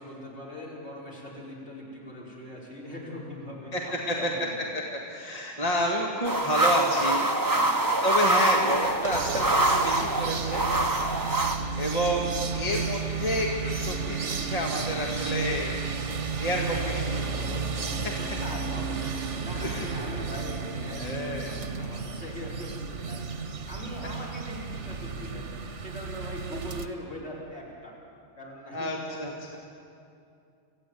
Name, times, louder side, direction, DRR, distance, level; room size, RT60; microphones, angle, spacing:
voice 1, 0.0-4.7 7.5-7.9 10.9-11.2 18.2-19.2 19.4-25.5 25.8-28.0 28.4-29.4, left 1 dB, 65° left, -5 dB, 5.6 m, -41 dB
voice 2, 3.7-4.3 4.7-7.3 7.6-10.7 11.2-16.1 16.4-18.1 19.5-19.8 21.0-21.5 28.7-29.6, equal, 35° left, -1 dB, 2.1 m, -30 dB
sound 1, 6.2-11.6, right 2 dB, 20° right, 1.0 m, -25 dB
sound 2, 8.7-26.9, right 4 dB, 80° right, 1.6 m, -33 dB
25.0 x 15.5 x 9.4 m, 2.5 s
omnidirectional pair, 1.2 m